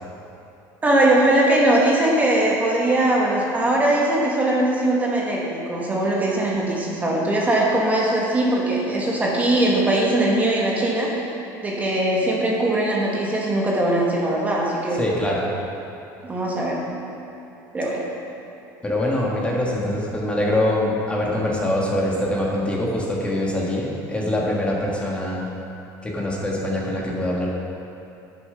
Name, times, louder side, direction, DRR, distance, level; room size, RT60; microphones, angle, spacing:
voice 1, 0.8-11.2 11.6-15.0 16.2-16.8 17.7-18.0, right 1 dB, 20° right, -3 dB, 1.4 m, -20 dB
voice 2, 15.0-15.5 18.8-25.5 26.0-27.5, left 1 dB, 15° left, -3 dB, 1.5 m, -24 dB
9.1 x 6.7 x 5.7 m, 2.7 s
cardioid pair, 120°, 8 cm